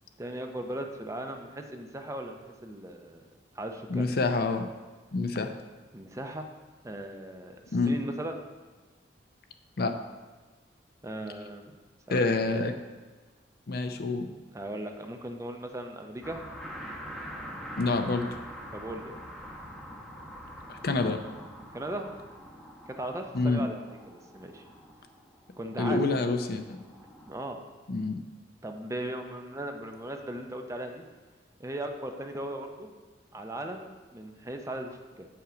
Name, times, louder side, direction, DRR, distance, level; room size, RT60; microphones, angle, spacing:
voice 1, 0.2-3.2 3.5-4.1 5.9-6.5 6.8-7.6 7.9-8.4 11.0-11.6 12.1-12.4 14.5-16.5 18.7-19.2 21.7-22.1 22.9-24.6 25.6-26.0 27.3-27.6 28.6-31.1 31.6-32.9 33.3-35.3, right 1 dB, 15° right, 4 dB, 0.6 m, -38 dB
voice 2, 3.9-4.7 5.1-5.5 7.7-7.9 9.8-9.9 12.1-12.7 13.7-14.3 17.8-18.3 20.7-21.2 23.3-23.6 25.8-26.8 27.9-28.2, left 3 dB, 55° left, 7 dB, 0.6 m, -27 dB
sound 1, 16.2-27.3, equal, ahead, 0.9 m, -44 dB
7.8 x 5.7 x 5.0 m, 1.3 s
head